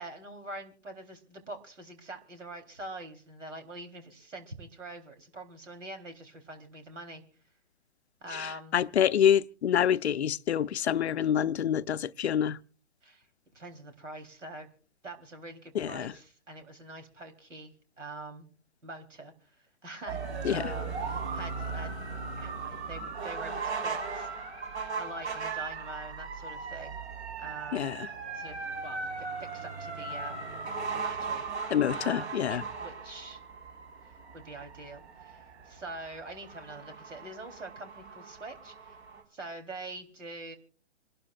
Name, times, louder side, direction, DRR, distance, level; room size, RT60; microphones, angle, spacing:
voice 1, 0.0-7.2 8.2-8.7 13.0-13.3 13.5-14.7 15.0-18.5 18.8-19.3 19.8-21.9 22.4-24.3 25.0-27.0 27.4-27.9 28.3-30.4 30.9-31.4 32.0-33.4 34.0-39.0 39.3-40.6, right 2 dB, 85° right, 3.9 m, -44 dB
voice 2, 8.3-12.6 15.7-16.1 20.4-20.7 27.7-28.1 31.7-32.6, left 9 dB, 65° left, 0.6 m, -27 dB
sound 1, 20.1-39.2, right 4 dB, 65° right, 5.1 m, -38 dB
26.5 x 12.0 x 2.5 m
hypercardioid pair, 140°, 36 cm